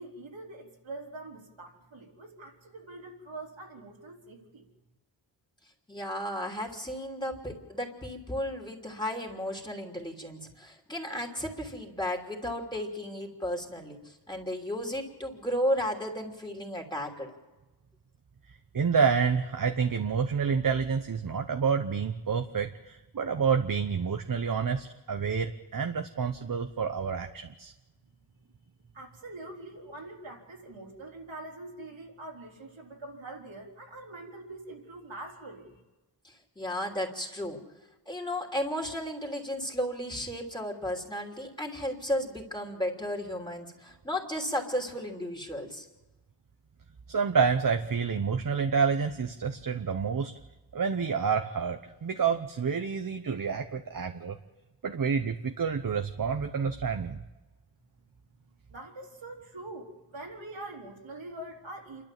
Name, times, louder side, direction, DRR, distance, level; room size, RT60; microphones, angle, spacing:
voice 1, 0.0-4.7 28.9-35.8 58.7-62.0, right 2 dB, 90° right, -2 dB, 4.1 m, -44 dB
voice 2, 5.9-17.3 36.2-37.6 38.1-45.9, equal, 10° left, 1 dB, 3.0 m, -34 dB
voice 3, 18.7-27.7 47.1-50.3 50.7-54.4 54.8-57.2, right 6 dB, 45° right, 6 dB, 0.9 m, -28 dB
29.0 x 12.5 x 7.5 m, 1.2 s
wide cardioid pair, 120°, 45 cm